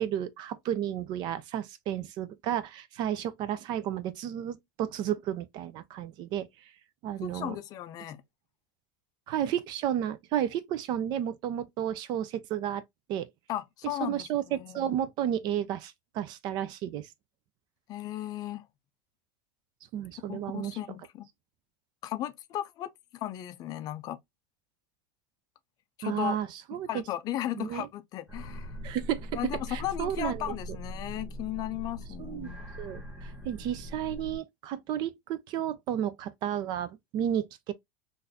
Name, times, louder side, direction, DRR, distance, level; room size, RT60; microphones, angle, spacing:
voice 1, 0.0-6.5 7.0-7.6 9.3-12.8 13.1-13.3 14.0-17.1 19.9-20.8 26.0-26.9 27.5-27.9 28.8-29.3 29.7-30.5 32.2-37.7, right 10 dB, 45° right, 0.5 m, -32 dB
voice 2, 7.2-8.2 13.5-15.0 17.9-18.6 20.3-21.3 22.0-24.2 26.0-26.4 26.7-28.7 29.3-32.6, left 13 dB, 40° left, 0.4 m, -36 dB
sound 1, 28.3-34.4, equal, 10° right, 1.3 m, -41 dB
3.8 x 2.6 x 2.7 m
supercardioid pair, 140°, 10 cm